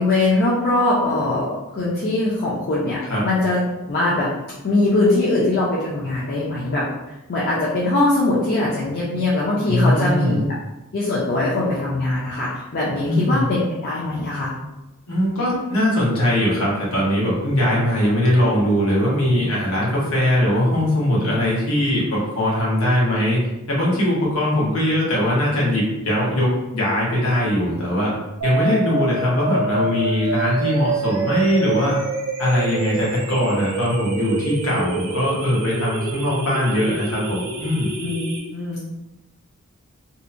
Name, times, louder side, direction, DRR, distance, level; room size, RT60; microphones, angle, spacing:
voice 1, 0.0-1.5 1.7-3.0 3.2-3.6 3.9-4.3 4.6-6.8 7.3-10.4 10.9-14.5 38.0-38.2 38.5-38.8, left 2 dB, 45° left, -6 dB, 0.5 m, -21 dB
voice 2, 9.7-10.4 13.1-13.5 15.1-23.4 23.7-28.1 28.4-32.0 32.4-37.9, left 1 dB, 75° left, -5 dB, 0.9 m, -20 dB
sound 1, 28.4-38.4, right 3 dB, 90° right, 0.5 m, -27 dB
2.7 x 2.1 x 2.5 m, 0.97 s
head